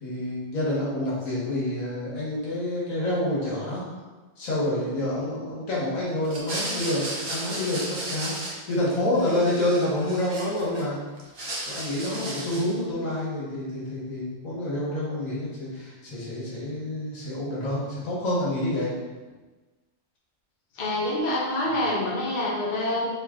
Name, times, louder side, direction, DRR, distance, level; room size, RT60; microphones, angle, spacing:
voice 1, 0.0-3.9 4.4-11.0 11.7-18.9, left 1 dB, 75° left, -6 dB, 1.7 m, -28 dB
sound 1, 6.2-8.9 9.1-10.8 11.2-12.8, right 1 dB, 45° right, 1.0 m, -34 dB
voice 2, 20.8-23.1, left 1 dB, 40° left, -4 dB, 0.8 m, -26 dB
4.8 x 2.9 x 3.6 m, 1.3 s
omnidirectional pair, 1.4 m